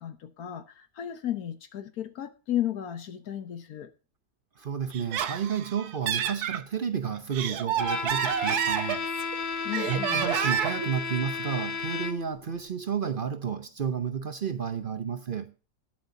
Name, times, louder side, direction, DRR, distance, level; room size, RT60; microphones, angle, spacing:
voice 1, 0.0-3.9 9.6-10.3, left 11 dB, 75° left, 1.5 m, -34 dB
voice 2, 4.6-9.1 9.9-15.5, right 7 dB, 45° right, 0.7 m, -31 dB
Laughter, 4.9-6.6 7.1-9.3 9.7-10.9, right 9 dB, 90° right, 1.4 m, -29 dB
Bowed string instrument, 7.8-12.4, left 5 dB, 50° left, 0.6 m, -33 dB
20.0 x 7.9 x 2.7 m
omnidirectional pair, 1.6 m